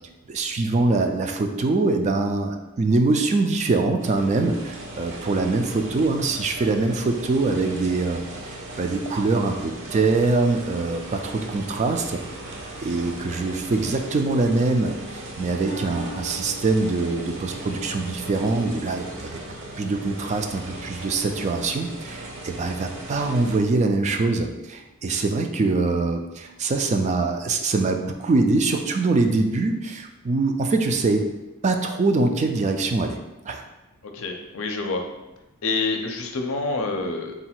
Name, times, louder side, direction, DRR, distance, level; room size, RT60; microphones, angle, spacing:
voice 1, 0.3-12.2 12.8-19.4 19.8-31.2 31.6-33.2 33.5-33.6, right 3 dB, 35° right, 5 dB, 0.3 m, -23 dB
sound 1, 4.0-23.6, right 1 dB, 60° right, 0.7 m, -38 dB
Harp, 15.6-19.4 19.9-20.3 21.0-21.1, right 2 dB, 90° right, 0.8 m, -41 dB
voice 2, 34.0-35.0 35.6-37.3, left 3 dB, 65° left, 3 dB, 0.5 m, -27 dB
3.8 x 2.3 x 4.3 m, 0.99 s
head